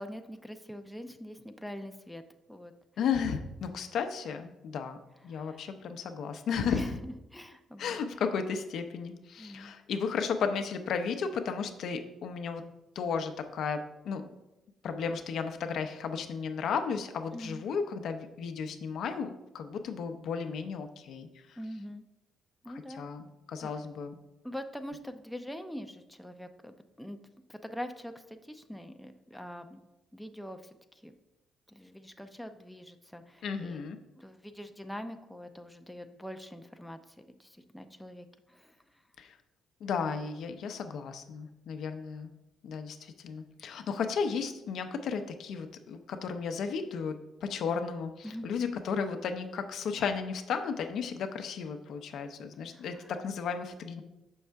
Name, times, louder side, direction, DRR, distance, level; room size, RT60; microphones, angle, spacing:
voice 1, 0.0-2.2 2.5-2.7 5.3-5.7 6.7-8.0 9.4-9.7 17.3-17.6 21.6-22.0 22.6-23.1 23.6-23.7 24.4-27.2 27.5-29.8 30.1-30.8 31.0-31.1 31.7-33.8 34.2-38.8 48.2-48.5 52.7-53.1, equal, 5° left, 6 dB, 0.5 m, -43 dB
voice 2, 3.0-5.0 5.2-6.8 7.8-12.6 13.0-14.2 14.8-21.6 22.7-24.2 33.4-34.0 39.2-39.3 39.8-42.3 42.6-47.1 47.4-54.0, left 6 dB, 70° left, 6 dB, 0.6 m, -34 dB
6.3 x 5.4 x 3.4 m, 0.95 s
cardioid pair, 90°, 0 cm